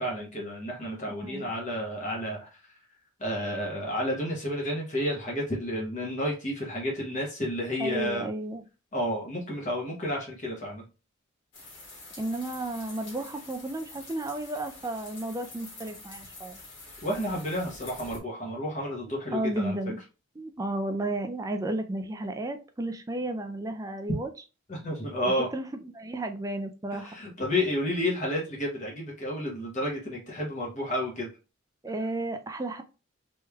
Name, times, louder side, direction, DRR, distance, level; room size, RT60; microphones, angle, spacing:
voice 1, 0.0-2.5 3.2-8.3 8.9-10.8 17.0-19.8 24.7-25.5 26.9-31.3, left 1 dB, 35° left, -2 dB, 0.9 m, -31 dB
voice 2, 1.1-1.5 7.8-8.6 12.2-16.6 19.3-20.0 20.4-24.3 25.5-27.2 31.8-32.8, right 2 dB, 15° right, 7 dB, 0.3 m, -33 dB
sound 1, 11.5-18.2, left 2 dB, 55° left, 1.4 m, -47 dB
3.2 x 3.1 x 2.3 m, 0.31 s
head